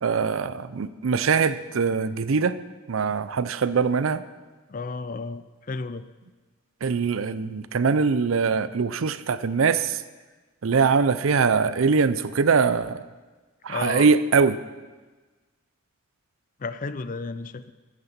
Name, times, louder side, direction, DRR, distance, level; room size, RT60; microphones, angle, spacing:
voice 1, 0.0-2.6 2.9-4.2 6.8-10.0 10.6-13.0 13.6-14.6, right 5 dB, 75° right, 15 dB, 0.5 m, -22 dB
voice 2, 4.7-6.0 13.7-14.1 16.6-17.7, left 4 dB, 40° left, 13 dB, 0.5 m, -32 dB
13.5 x 6.8 x 7.3 m, 1.3 s
head